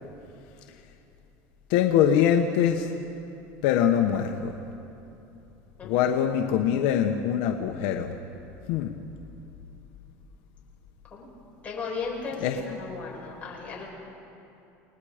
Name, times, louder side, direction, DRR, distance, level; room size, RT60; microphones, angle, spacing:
voice 1, 1.7-2.9 3.6-4.5 5.8-8.1 8.7-8.9 12.4-12.8, left 9 dB, 70° left, 4 dB, 1.1 m, -23 dB
voice 2, 11.6-12.4 12.6-13.9, left 5 dB, 20° left, -4 dB, 5.9 m, -35 dB
29.5 x 19.5 x 5.1 m, 2.8 s
cardioid pair, 150°, 7 cm